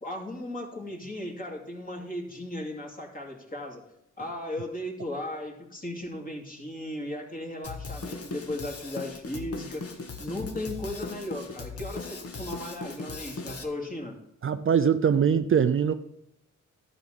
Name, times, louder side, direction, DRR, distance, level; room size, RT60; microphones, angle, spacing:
voice 1, 0.0-3.8 4.2-9.8 10.2-14.2, left 1 dB, 25° left, 2.6 m, -36 dB
Drum kit, 7.6-13.6, left 3 dB, 50° left, 1.5 m, -38 dB
voice 2, 14.4-15.9, right 7 dB, 40° right, 0.5 m, -22 dB
12.0 x 5.1 x 6.0 m
cardioid pair, 75°, 31 cm